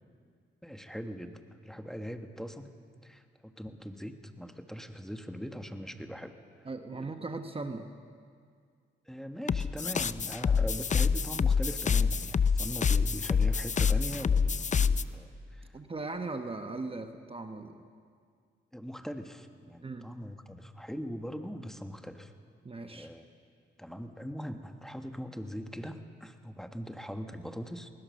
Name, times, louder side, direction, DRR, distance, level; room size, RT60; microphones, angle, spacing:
voice 1, 0.6-2.8 3.0-6.3 6.6-6.7 7.0-7.1 9.1-15.7 18.7-22.3 22.9-23.2 23.8-27.9, equal, ahead, 6 dB, 1.5 m, -41 dB
voice 2, 6.6-7.9 15.7-17.8 19.8-20.1 22.6-23.1, right 3 dB, 25° right, 7 dB, 1.2 m, -38 dB
sound 1, 9.5-15.0, left 6 dB, 35° left, 0.6 m, -27 dB
20.5 x 20.0 x 6.6 m, 2.2 s
cardioid pair, 75°, 20 cm